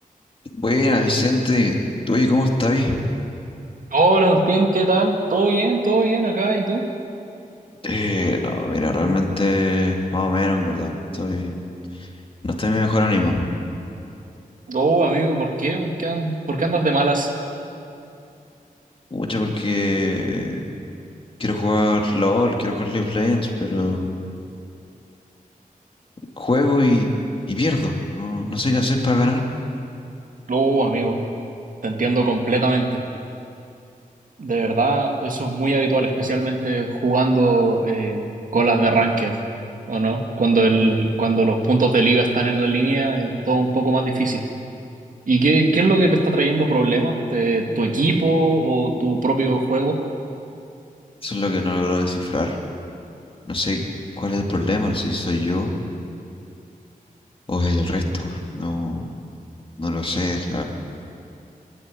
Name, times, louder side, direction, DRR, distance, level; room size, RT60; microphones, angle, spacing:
voice 1, 0.5-1.8 2.1-3.0 7.8-11.6 11.9-12.1 12.4-13.5 19.1-20.6 21.4-24.1 26.4-27.1 27.5-29.4 51.2-52.6 53.4-53.8 54.2-55.7 57.5-59.1 59.8-60.6, left 2 dB, 35° left, 1 dB, 2.7 m, -22 dB
voice 2, 3.9-6.8 14.7-17.3 30.5-31.2 31.8-33.0 34.4-38.3 38.5-39.3 39.9-44.4 45.3-50.0, right 2 dB, 65° right, 2 dB, 2.2 m, -20 dB
23.5 x 13.0 x 9.1 m, 2.6 s
wide cardioid pair, 95°, 15 cm